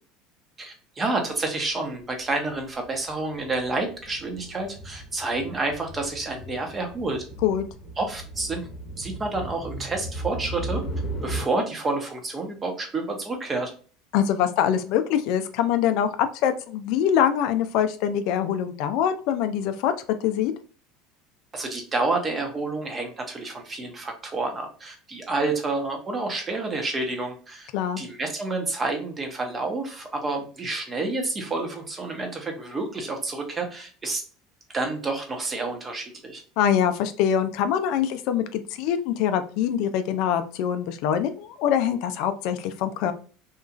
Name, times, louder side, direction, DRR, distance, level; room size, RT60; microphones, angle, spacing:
voice 1, 0.6-7.2 8.0-8.7 9.0-10.8 11.2-13.7 21.5-27.7 28.0-34.2 34.7-36.4, right 3 dB, 25° right, 4 dB, 0.8 m, -29 dB
sound 1, 2.3-2.6 2.8-11.5, right 1 dB, 40° left, 0.8 m, -36 dB
voice 2, 14.1-16.1 16.4-19.9 20.2-20.5 27.7-28.0 36.6-43.1, left 9 dB, 65° left, 9 dB, 0.3 m, -24 dB
2.9 x 2.3 x 2.3 m, 0.40 s
supercardioid pair, 95°, 0 cm